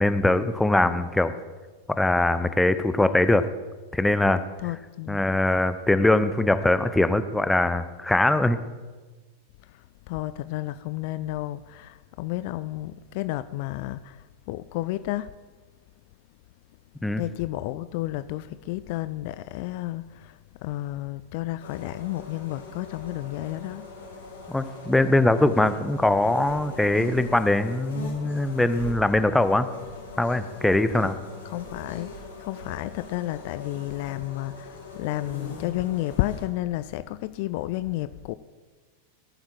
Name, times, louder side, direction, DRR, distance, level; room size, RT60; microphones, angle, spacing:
voice 1, 0.0-1.3 1.9-3.4 3.9-4.4 5.1-8.6 17.0-17.2 24.5-29.7 30.2-31.2, left 2 dB, 5° left, 0.8 m, -22 dB
voice 2, 4.6-5.2 9.6-15.3 17.1-23.9 31.0-31.1 31.4-38.3, left 16 dB, 50° left, 0.4 m, -32 dB
sound 1, 21.6-36.5, left 2 dB, 70° left, 3.9 m, -41 dB
18.0 x 11.5 x 4.5 m
figure-of-eight pair, 90°, 0 cm